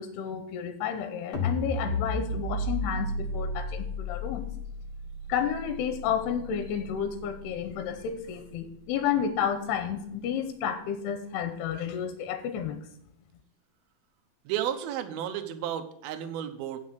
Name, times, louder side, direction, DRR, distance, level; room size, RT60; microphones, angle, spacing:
voice 1, 0.0-4.4 5.3-12.8, left 8 dB, 80° left, 8 dB, 2.8 m, -31 dB
sound 1, 1.3-7.6, left 1 dB, 55° left, 1.5 m, -33 dB
voice 2, 14.4-16.8, right 10 dB, 75° right, 6 dB, 2.5 m, -32 dB
9.1 x 6.4 x 6.1 m, 0.72 s
omnidirectional pair, 4.9 m